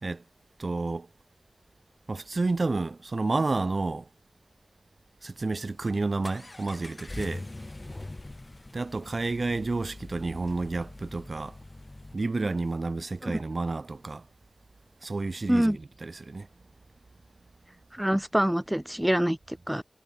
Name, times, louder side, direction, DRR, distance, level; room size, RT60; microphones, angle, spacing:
voice 1, 0.6-1.1 2.1-4.1 5.2-7.5 8.7-11.6 12.1-14.2 15.0-16.5, right 3 dB, 60° right, 3.2 m, -30 dB
Accelerating revving vroom, 5.6-12.2, left 2 dB, 35° left, 4.9 m, -43 dB
voice 2, 17.9-19.8, equal, 10° right, 0.4 m, -25 dB
wide cardioid pair, 55°, 0 cm